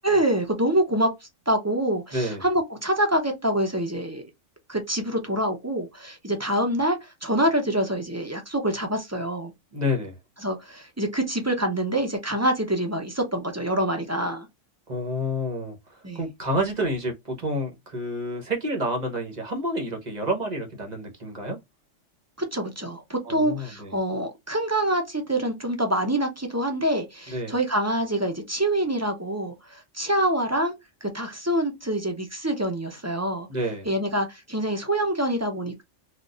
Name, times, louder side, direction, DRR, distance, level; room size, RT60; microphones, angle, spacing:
voice 1, 0.0-1.1 1.5-4.2 4.7-9.5 10.4-14.5 16.0-16.2 22.4-30.7 31.0-33.5 33.9-35.8, right 1 dB, 15° right, 0.6 m, -26 dB
voice 2, 2.1-2.4 9.7-10.2 14.9-21.6 23.2-23.9 27.3-27.5 33.5-33.9, equal, 40° right, 0.9 m, -29 dB
4.0 x 2.4 x 2.4 m
omnidirectional pair, 1.3 m